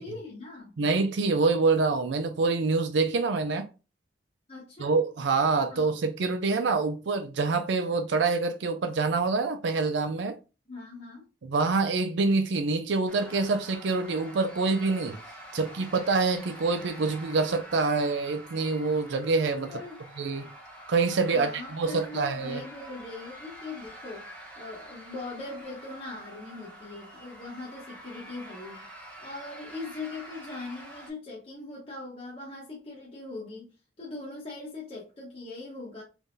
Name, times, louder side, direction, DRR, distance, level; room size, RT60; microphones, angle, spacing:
voice 1, 0.0-0.7 4.5-4.9 5.7-5.9 10.7-11.2 19.7-20.0 21.3-28.8 29.2-36.0, left 3 dB, 30° left, 1.1 m, -41 dB
voice 2, 0.8-3.7 4.8-10.3 11.4-15.2 15.5-19.7 20.2-20.5 20.9-22.6, right 3 dB, 75° right, 0.5 m, -26 dB
sound 1, 13.1-31.1, equal, 5° left, 1.2 m, -47 dB
3.6 x 3.5 x 2.6 m
head